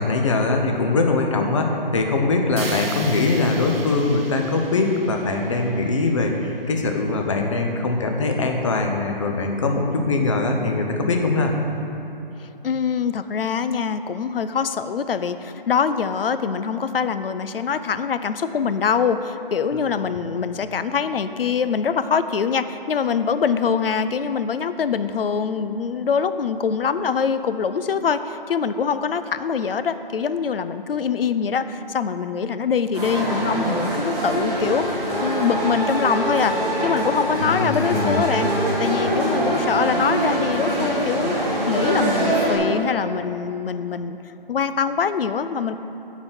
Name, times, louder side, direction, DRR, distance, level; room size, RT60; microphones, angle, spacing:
voice 1, 0.0-11.5 19.7-19.8 37.4-38.2, left 3 dB, 35° left, 3 dB, 0.7 m, -22 dB
sound 1, 2.6-6.6, right 3 dB, 85° right, 1.0 m, -37 dB
voice 2, 12.4-38.5 38.8-44.2 44.5-45.8, left 6 dB, 75° left, 12 dB, 0.5 m, -24 dB
sound 2, 32.9-42.6, right 1 dB, 5° right, 0.7 m, -23 dB
9.5 x 4.0 x 6.1 m, 2.9 s
figure-of-eight pair, 160°, 29 cm